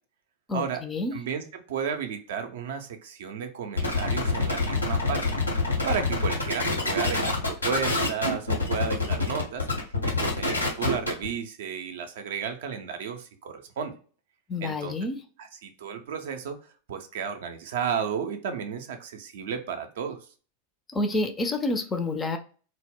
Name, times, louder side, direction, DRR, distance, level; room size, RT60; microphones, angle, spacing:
voice 1, 0.5-1.1 14.5-15.2 20.9-22.4, left 2 dB, 20° left, 6 dB, 0.3 m, -28 dB
voice 2, 1.1-5.5 5.8-9.7 10.0-13.9 14.6-14.9 15.4-16.6 16.9-20.2, right 7 dB, 55° right, 7 dB, 0.4 m, -33 dB
sound 1, 3.8-11.3, left 3 dB, 85° left, 0.8 m, -26 dB
2.0 x 2.0 x 3.4 m, 0.39 s
figure-of-eight pair, 90°, 0 cm